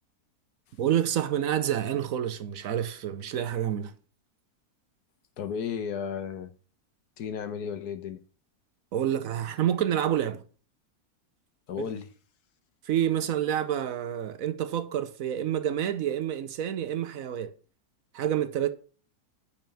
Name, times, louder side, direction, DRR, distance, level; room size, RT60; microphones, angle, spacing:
voice 1, 0.8-3.9 8.9-10.4 12.9-17.5 18.1-18.7, right 10 dB, 65° right, 1.1 m, -28 dB
voice 2, 5.4-6.5 7.2-8.2 11.7-12.1, left 7 dB, 85° left, 1.5 m, -34 dB
9.1 x 4.3 x 6.8 m
omnidirectional pair, 1.6 m